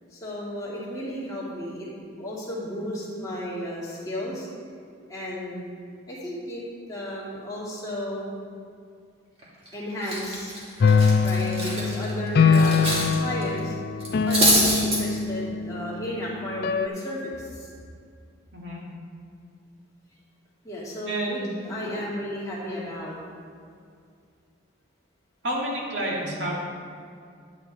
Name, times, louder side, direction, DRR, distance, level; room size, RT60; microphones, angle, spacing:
voice 1, 0.1-1.9 2.2-4.5 5.1-5.7 6.1-6.6 6.9-8.3 9.7-10.6 11.2-13.7 14.3-17.7 20.6-23.2, equal, 15° left, -7 dB, 2.3 m, -33 dB
Cutlery silverware, 9.4-9.7 10.0-13.1 13.4-13.6 14.0-15.0, right 1 dB, 30° right, 1.9 m, -25 dB
sound 1, 10.8-15.9 16.6-16.9, left 5 dB, 50° left, 0.3 m, -22 dB
voice 2, 21.1-22.0 25.4-26.5, right 1 dB, 60° right, -4 dB, 2.1 m, -30 dB
10.5 x 8.7 x 4.1 m, 2.3 s
head